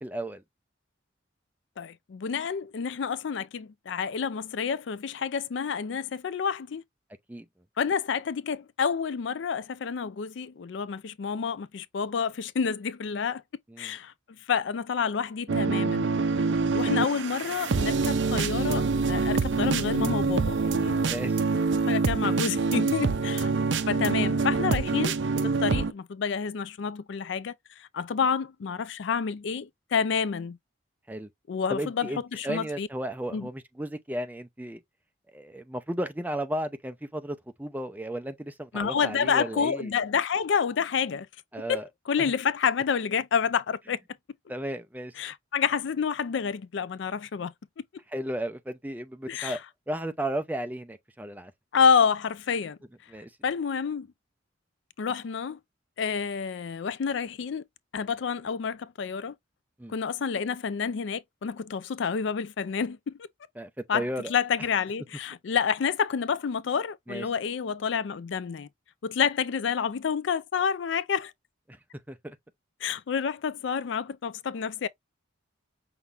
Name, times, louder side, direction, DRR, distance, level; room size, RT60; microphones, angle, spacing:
voice 1, 0.0-0.4 7.3-7.4 13.7-13.9 21.0-21.3 31.1-31.3 31.7-34.8 35.3-39.9 41.5-41.8 42.2-42.3 44.5-45.1 48.1-49.6 49.9-51.5 53.1-53.3 59.8-59.9 63.6-64.3 67.1-67.2 72.1-72.4, right 1 dB, 10° right, 0.6 m, -34 dB
voice 2, 1.8-6.8 7.8-13.4 13.8-14.1 14.5-16.1 16.7-21.0 21.9-23.5 23.9-25.2 25.4-30.6 31.5-32.9 33.3-33.5 38.7-41.3 41.7-44.0 45.2-47.5 49.3-49.6 51.7-52.8 53.4-54.1 55.0-55.6 56.0-57.6 57.9-59.3 59.9-63.2 63.9-68.7 69.0-71.3 72.8-74.9, left 6 dB, 65° left, 0.4 m, -29 dB
sound 1, 15.5-25.9, right 4 dB, 65° right, 0.5 m, -26 dB
5.8 x 2.2 x 3.4 m
head